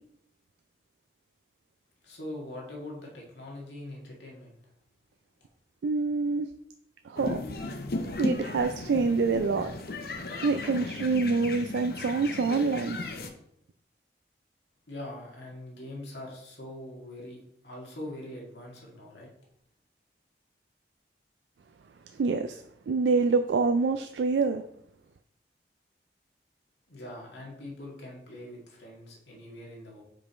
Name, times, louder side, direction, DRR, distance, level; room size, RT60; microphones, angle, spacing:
voice 1, 2.0-4.5 14.9-19.3 26.9-30.0, left 1 dB, 80° left, -2 dB, 2.0 m, -42 dB
voice 2, 5.8-6.5 7.0-7.4 8.2-9.7 10.4-13.0 22.1-24.6, right 4 dB, 90° right, 8 dB, 0.4 m, -26 dB
sound 1, 7.2-13.3, left 2 dB, 55° left, 0.7 m, -35 dB
5.2 x 5.1 x 4.3 m, 0.73 s
head